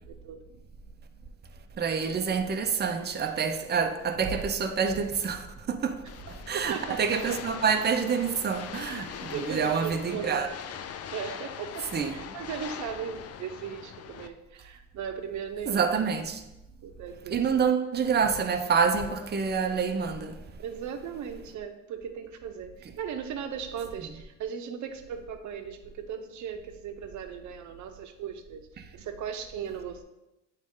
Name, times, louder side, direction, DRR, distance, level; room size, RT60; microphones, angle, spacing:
voice 1, 0.1-0.4 1.8-2.1 6.7-7.0 9.3-10.5 11.1-15.8 16.8-17.7 20.6-30.0, right 7 dB, 70° right, 0.8 m, -38 dB
voice 2, 1.8-6.0 6.5-10.5 11.9-12.2 15.7-16.4 17.3-20.4, right 6 dB, 35° right, 0.6 m, -27 dB
sound 1, 6.1-14.3, left 8 dB, 55° left, 0.5 m, -41 dB
8.8 x 3.2 x 3.7 m
cardioid pair, 90°, 30 cm